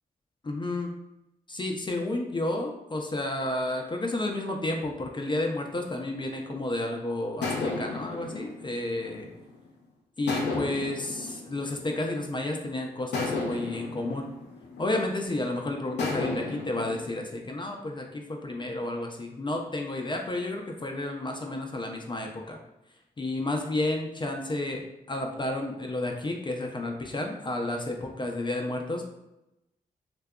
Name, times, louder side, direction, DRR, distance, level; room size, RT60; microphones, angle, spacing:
voice 1, 0.4-0.9 1.5-9.3 10.2-14.3 14.8-22.6 23.2-24.8 25.1-29.1, left 2 dB, 25° left, 2 dB, 0.4 m, -31 dB
sound 1, 7.4-9.7 10.3-12.4 13.1-15.4 16.0-17.0, left 3 dB, 85° left, 0.5 m, -34 dB
2.6 x 2.2 x 2.3 m, 0.92 s
supercardioid pair, 45°, 17 cm